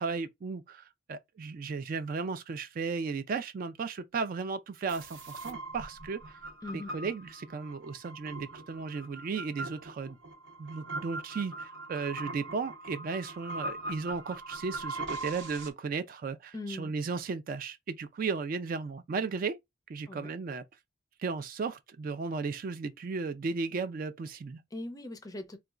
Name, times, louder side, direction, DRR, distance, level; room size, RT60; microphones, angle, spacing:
voice 1, 0.0-6.4 6.7-10.2 10.6-19.6 19.9-20.6 21.2-24.6, right 4 dB, 45° right, 0.3 m, -35 dB
sound 1, 4.9-15.7, right 2 dB, 70° right, 0.8 m, -41 dB
voice 2, 16.5-16.9 20.1-20.3 24.7-25.6, left 2 dB, 20° left, 0.5 m, -40 dB
3.9 x 2.2 x 2.3 m
head